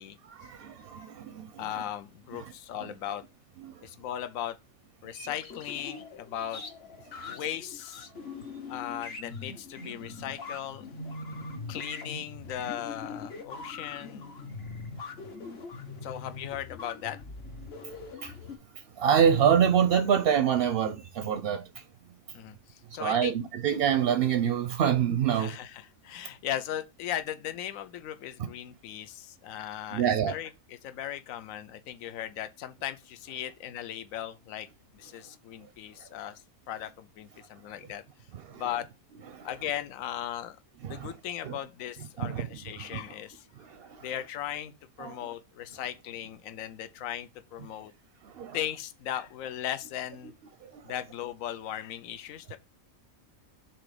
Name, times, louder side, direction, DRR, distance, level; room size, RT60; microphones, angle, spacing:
voice 1, 0.3-1.6 2.4-2.5 3.6-3.9 5.2-5.3 7.1-7.3 8.3-8.5 11.5-11.7 18.2-18.4 19.0-21.8 23.0-25.6 28.4-28.5 29.9-30.3 36.0-36.1 38.3-38.6 39.3-39.5 40.8-41.1 41.4-41.6 42.2-42.5 42.8-43.0 43.6-44.1 45.0-45.2 48.2-48.6 50.6-50.9, right 8 dB, 60° right, 0.6 m, -27 dB
voice 2, 1.6-3.2 3.8-4.6 5.0-6.6 7.3-8.1 8.7-10.9 11.7-14.4 16.0-17.2 22.3-23.3 25.3-34.7 34.9-38.0 38.5-38.9 39.4-40.6 40.9-43.5 44.0-44.7 45.0-47.9 48.5-50.3 50.8-52.6, left 11 dB, 80° left, 1.1 m, -37 dB
sound 1, 5.3-18.6, left 4 dB, 50° left, 1.1 m, -42 dB
6.0 x 3.9 x 4.8 m
omnidirectional pair, 1.4 m